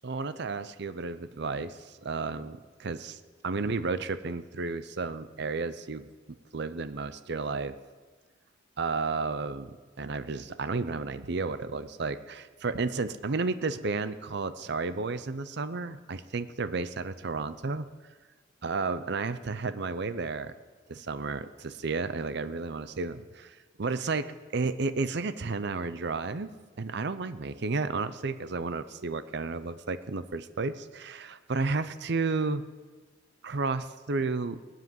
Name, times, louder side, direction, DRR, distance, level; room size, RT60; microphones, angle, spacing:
voice 1, 0.0-6.1 6.5-7.7 8.8-17.9 18.6-20.5 20.9-26.5 26.8-32.6 33.4-34.6, right 4 dB, 60° right, 12 dB, 0.7 m, -32 dB
19.5 x 7.7 x 9.3 m, 1.4 s
head